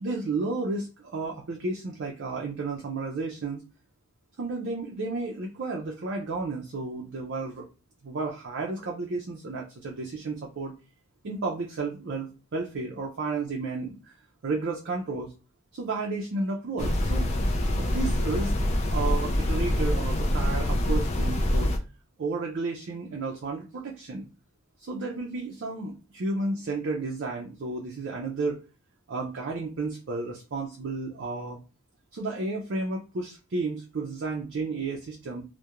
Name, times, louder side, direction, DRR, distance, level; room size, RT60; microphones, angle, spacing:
voice 1, 0.0-3.6 4.4-7.7 8.0-10.7 11.2-14.1 14.4-15.3 15.7-17.3 17.7-18.5 18.9-21.7 22.2-24.3 24.8-28.6 29.1-31.6 32.1-35.4, right 3 dB, 50° right, 0 dB, 0.4 m, -32 dB
sound 1, 16.8-21.8, left 1 dB, 30° left, 0.3 m, -25 dB
2.3 x 2.1 x 2.8 m, 0.32 s
head